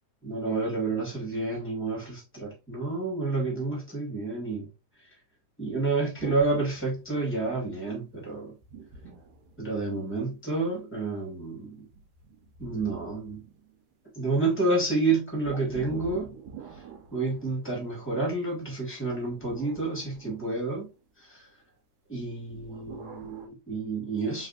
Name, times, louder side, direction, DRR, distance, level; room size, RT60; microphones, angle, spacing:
voice 1, 0.2-4.7 5.6-8.5 9.6-11.9 12.6-13.4 14.1-16.3 17.1-20.9 21.3-21.4 22.1-24.5, right 3 dB, 10° left, 0.8 m, -29 dB
sound 1, 6.2-7.6 8.6-10.2 11.9-13.9 15.4-18.0 19.1-21.0 22.5-23.5, right 5 dB, 80° right, 2.2 m, -45 dB
4.7 x 3.2 x 2.5 m
omnidirectional pair, 3.6 m